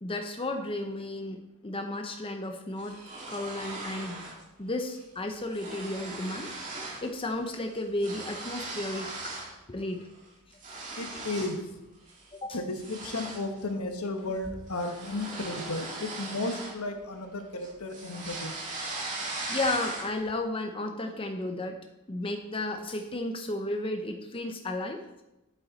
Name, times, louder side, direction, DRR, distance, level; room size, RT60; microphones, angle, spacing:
voice 1, 0.0-3.0 3.3-4.3 4.6-9.1 9.7-10.1 11.1-11.2 12.3-12.6 19.5-21.8 22.1-25.0, left 2 dB, 25° left, 4 dB, 0.7 m, -33 dB
sound 1, 2.8-4.4 4.8-5.0 5.3-7.1 7.4-9.6 10.0-11.6 12.1-12.3 12.7-17.3 17.6-20.3, right 2 dB, 35° right, 2.1 m, -39 dB
voice 2, 11.0-11.7 12.5-18.5, left 2 dB, 80° left, 5 dB, 1.2 m, -34 dB
8.5 x 8.4 x 4.1 m, 0.96 s
head